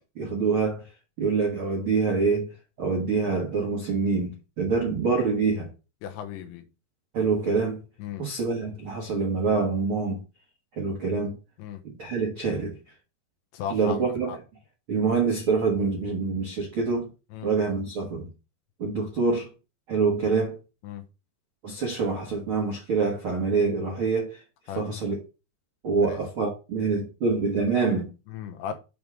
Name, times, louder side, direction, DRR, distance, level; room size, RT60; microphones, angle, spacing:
voice 1, 0.1-0.8 1.2-2.5 2.8-5.7 7.1-7.8 8.2-10.2 10.7-11.3 11.8-12.8 13.7-14.3 14.9-17.1 17.4-18.3 18.8-19.5 19.9-20.6 21.6-24.4 24.7-25.2 25.8-28.1, right 4 dB, 70° right, 1.2 m, -25 dB
voice 2, 6.0-6.6 8.0-8.3 11.6-11.8 13.5-14.4 17.3-17.5 20.8-21.0 24.7-24.9 26.1-26.2 28.3-28.7, left 9 dB, 85° left, 3.2 m, -36 dB
7.7 x 3.5 x 6.1 m
omnidirectional pair, 5.2 m